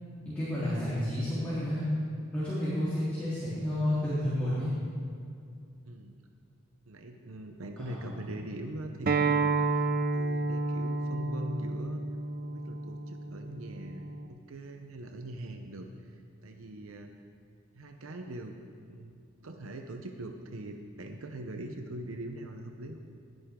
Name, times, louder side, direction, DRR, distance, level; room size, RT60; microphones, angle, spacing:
voice 1, 0.2-1.9 2.3-4.7 7.8-8.2, left 1 dB, 5° left, -14 dB, 3.5 m, -31 dB
voice 2, 6.9-12.0 12.4-17.1 17.7-18.5 18.9-23.0, right 1 dB, 80° right, 5 dB, 0.8 m, -42 dB
Acoustic guitar, 9.1-14.3, right 3 dB, 45° right, 0.6 m, -30 dB
19.0 x 10.5 x 3.7 m, 2.4 s
head